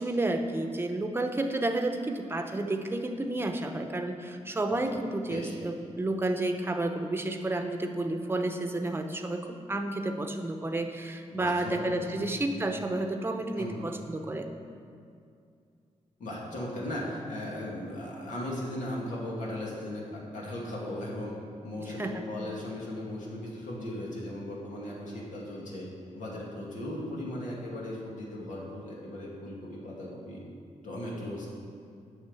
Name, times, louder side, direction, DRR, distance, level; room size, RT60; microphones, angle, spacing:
voice 1, 0.0-14.5 22.0-22.2, right 2 dB, 20° right, 5 dB, 0.8 m, -31 dB
voice 2, 11.3-12.3 13.6-13.8 16.2-21.3 21.6-25.9 26.1-30.4 30.8-31.5, left 1 dB, 90° left, -4 dB, 2.4 m, -37 dB
8.8 x 6.4 x 7.6 m, 2.4 s
wide cardioid pair, 130°, 13 cm